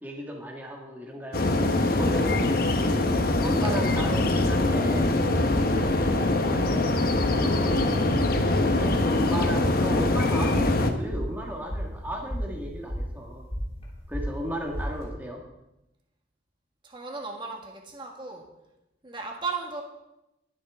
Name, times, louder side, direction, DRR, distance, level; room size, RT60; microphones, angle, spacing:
voice 1, 0.0-2.5 3.4-5.2 6.2-6.4 7.4-7.9 8.8-13.4 14.1-15.4, right 1 dB, 10° right, -1 dB, 1.6 m, -35 dB
sound 1, 1.3-10.9, left 2 dB, 50° left, 1.1 m, -23 dB
sound 2, 3.2-15.1, equal, 35° left, 3.4 m, -36 dB
voice 2, 16.8-18.5 19.0-19.8, right 4 dB, 25° right, 1 dB, 1.6 m, -35 dB
21.5 x 8.5 x 3.6 m, 0.91 s
head